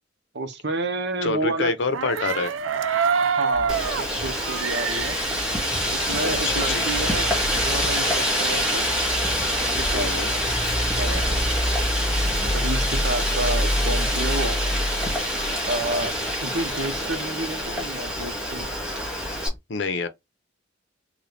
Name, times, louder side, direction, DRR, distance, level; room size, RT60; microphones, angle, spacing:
voice 1, 0.3-1.7 3.2-3.8 4.1-5.2 5.9-8.9 9.6-10.1 11.0-11.4 12.5-14.6 15.7-16.1 16.4-18.7, right 2 dB, 60° right, 0.8 m, -30 dB
voice 2, 1.2-2.5 6.2-6.9 9.9-10.3 19.3-19.4 19.7-20.1, left 4 dB, 65° left, 0.7 m, -27 dB
sound 1, 1.9-6.5 6.8-6.9 7.1-9.0, right 6 dB, 85° right, 0.5 m, -27 dB
sound 2, 3.5-19.6, equal, 30° right, 1.5 m, -30 dB
Wind, 3.7-19.5, equal, 5° right, 1.7 m, -26 dB
3.9 x 2.3 x 3.2 m
head